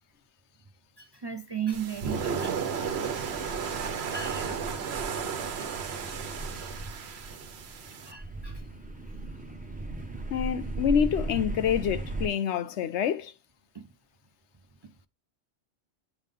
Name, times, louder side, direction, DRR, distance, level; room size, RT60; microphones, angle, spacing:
voice 1, 1.0-2.6 4.1-4.7 5.5-6.0 8.1-8.7 13.7-13.9 14.8-14.9, right 7 dB, 40° right, 0.4 m, -36 dB
sound 1, 1.7-8.1, right 6 dB, 65° right, 1.0 m, -33 dB
sound 2, 2.8-12.3, right 2 dB, 10° right, 0.9 m, -38 dB
voice 2, 10.3-13.3, left 8 dB, 75° left, 0.9 m, -27 dB
8.2 x 3.6 x 3.6 m
omnidirectional pair, 1.2 m